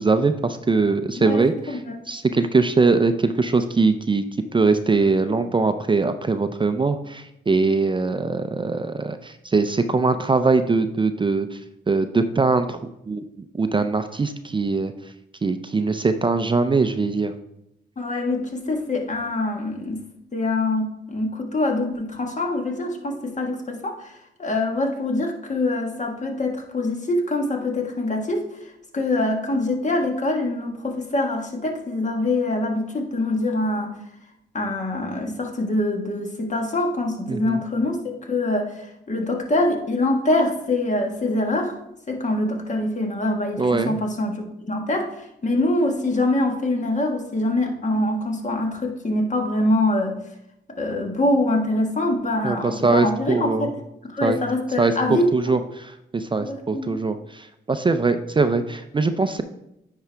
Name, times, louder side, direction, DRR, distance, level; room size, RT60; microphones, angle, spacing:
voice 1, 0.0-1.8 2.1-4.2 4.5-11.6 11.9-12.8 13.1-13.2 13.5-14.9 15.4-17.3 37.3-37.6 43.6-43.9 52.4-53.7 54.2-54.4 54.8-59.4, right 3 dB, 25° right, 9 dB, 0.5 m, -21 dB
voice 2, 1.1-1.9 18.0-20.0 20.3-34.0 34.5-41.8 42.1-50.2 50.8-53.8 54.0-55.6 56.4-56.9, left 2 dB, 40° left, 2 dB, 1.5 m, -24 dB
9.4 x 4.8 x 3.4 m, 0.83 s
cardioid pair, 60°, 19 cm